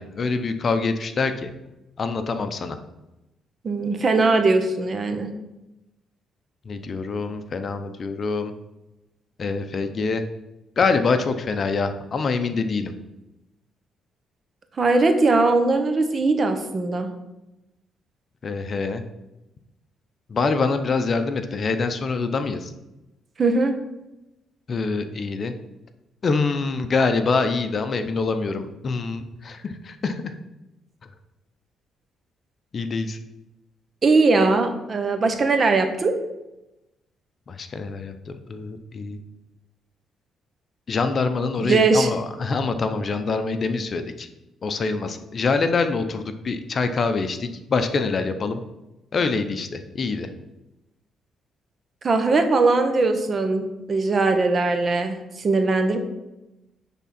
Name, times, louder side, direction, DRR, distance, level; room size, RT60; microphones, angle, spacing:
voice 1, 0.0-1.5 2.0-2.8 6.7-8.5 9.4-10.2 10.8-12.9 18.4-19.0 20.3-22.7 24.7-25.5 26.2-30.3 32.7-33.2 37.5-39.2 40.9-44.3 44.6-48.6 49.1-50.3, left 4 dB, 45° left, 8 dB, 0.6 m, -25 dB
voice 2, 3.6-5.3 14.8-17.1 23.4-23.7 34.0-36.1 41.6-42.1 52.0-56.0, right 3 dB, 40° right, 7 dB, 0.9 m, -20 dB
9.7 x 3.6 x 4.3 m, 0.96 s
cardioid pair, 90°, 0 cm